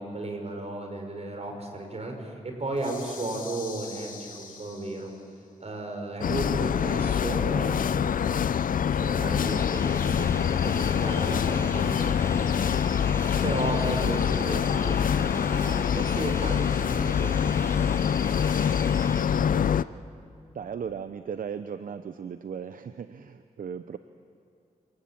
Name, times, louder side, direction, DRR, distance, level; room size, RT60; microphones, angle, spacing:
voice 1, 0.0-5.1 5.6-8.4 8.9-10.3 10.6-12.2 12.5-12.8 13.4-17.8, right 2 dB, 50° right, 3 dB, 5.8 m, -34 dB
sound 1, 2.8-5.3, left 5 dB, 90° left, 4.5 m, -44 dB
sound 2, 6.2-19.8, left 8 dB, 75° left, 0.5 m, -25 dB
sound 3, 9.4-19.2, left 1 dB, 20° left, 2.1 m, -40 dB
voice 2, 14.1-14.4 19.3-19.8 20.5-24.0, right 7 dB, 75° right, 10 dB, 0.8 m, -37 dB
27.5 x 20.0 x 8.7 m, 2.5 s
cardioid pair, 60°, 14 cm